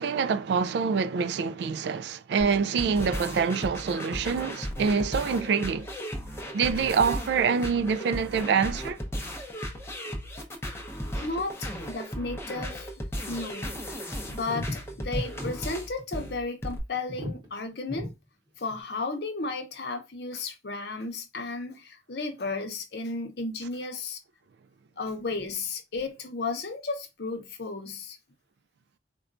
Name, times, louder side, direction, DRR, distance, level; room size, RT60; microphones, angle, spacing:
voice 1, 0.0-5.9 6.5-9.0, right 5 dB, 65° right, 0.3 m, -26 dB
sound 1, 2.4-16.8, equal, 15° left, 0.6 m, -36 dB
voice 2, 11.1-12.9 13.3-18.1 18.6-24.2 25.0-28.2, left 3 dB, 60° left, 0.7 m, -34 dB
sound 2, 14.4-15.5 15.8-16.0 16.4-16.5 16.9-17.5 17.9-18.1 18.7-18.8, left 1 dB, 25° right, 1.0 m, -35 dB
4.2 x 2.2 x 2.5 m
head